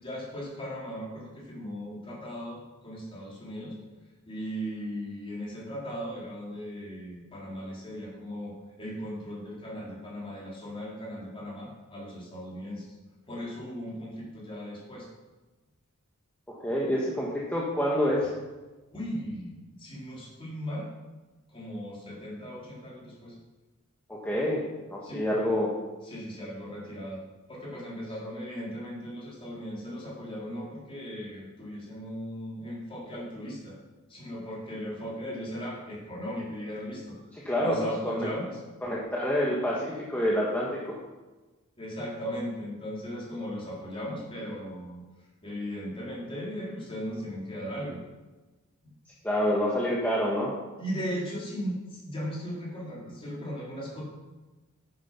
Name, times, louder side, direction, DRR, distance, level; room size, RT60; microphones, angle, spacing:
voice 1, 0.0-3.7 4.3-12.9 13.3-15.1 18.9-20.9 21.5-23.4 25.0-25.2 26.0-27.2 27.5-33.8 34.1-37.2 37.6-38.6 41.8-45.0 45.4-48.0 48.8-48.9 50.8-54.0, equal, 25° left, -5 dB, 4.0 m, -37 dB
voice 2, 16.5-18.3 24.1-24.6 24.9-25.7 37.3-37.8 38.0-38.3 38.8-41.0 49.2-50.5, equal, 10° left, -5 dB, 1.5 m, -27 dB
9.8 x 9.0 x 5.9 m, 1.2 s
head